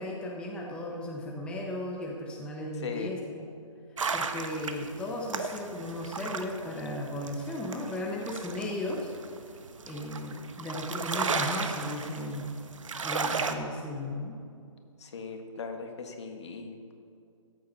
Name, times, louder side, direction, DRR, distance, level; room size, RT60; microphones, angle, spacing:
voice 1, 0.0-3.5 4.1-9.1 9.8-12.5 13.0-14.4, left 1 dB, 5° left, -1 dB, 1.0 m, -36 dB
voice 2, 2.8-3.1 13.2-13.8 15.0-16.9, left 5 dB, 60° left, 4 dB, 1.7 m, -39 dB
sound 1, 4.0-13.5, right 5 dB, 75° right, 1.1 m, -35 dB
14.0 x 7.7 x 5.5 m, 2.4 s
hypercardioid pair, 150°, 17 cm